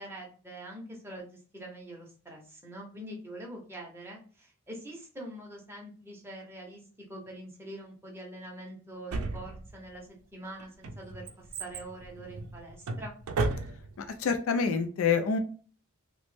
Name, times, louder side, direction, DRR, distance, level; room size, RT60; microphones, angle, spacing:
voice 1, 0.0-6.8 7.1-13.1, right 1 dB, 10° right, -1 dB, 0.7 m, -44 dB
Drawer open or close, 9.1-10.0 10.6-14.1 14.3-14.4, right 3 dB, 80° right, 0.4 m, -34 dB
voice 2, 14.2-15.4, left 5 dB, 65° left, 7 dB, 0.3 m, -26 dB
3.0 x 2.1 x 3.1 m, 0.41 s
head